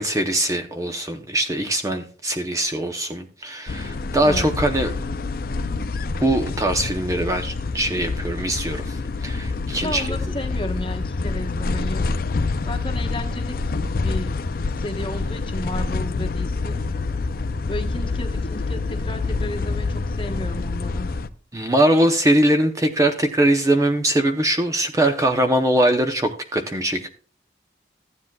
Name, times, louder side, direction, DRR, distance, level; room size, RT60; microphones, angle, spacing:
voice 1, 0.0-4.9 6.2-10.1 21.5-27.1, right 1 dB, 20° right, 5 dB, 0.6 m, -21 dB
sound 1, 3.7-21.3, left 3 dB, 50° left, 0.4 m, -27 dB
voice 2, 9.8-12.1 12.6-14.4 14.8-16.8 17.7-21.1, left 1 dB, 25° left, 5 dB, 1.0 m, -33 dB
14.5 x 9.8 x 2.3 m, 0.40 s
head